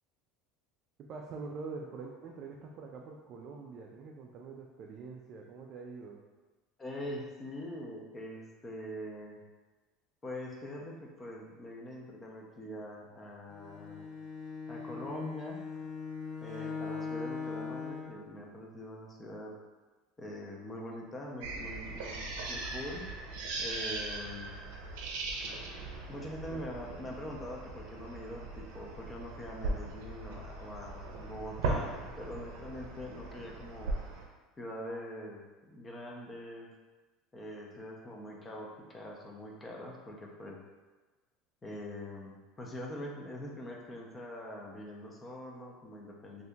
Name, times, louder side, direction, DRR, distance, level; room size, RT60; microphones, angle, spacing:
voice 1, 1.1-6.2 26.5-26.6, right 4 dB, 40° right, 0 dB, 0.3 m, -45 dB
voice 2, 6.8-9.4 10.2-14.2 14.7-15.6 16.4-19.5 20.2-22.2 22.5-23.1 23.6-24.5 26.1-33.9 34.6-36.7 37.3-40.6 41.6-46.4, left 1 dB, 15° left, -1 dB, 0.5 m, -43 dB
Bowed string instrument, 13.5-18.2, left 5 dB, 55° left, 0.9 m, -40 dB
sound 1, 21.4-34.3, right 2 dB, 85° right, 0.5 m, -39 dB
2.7 x 2.6 x 3.4 m, 1.3 s
cardioid pair, 155°, 0 cm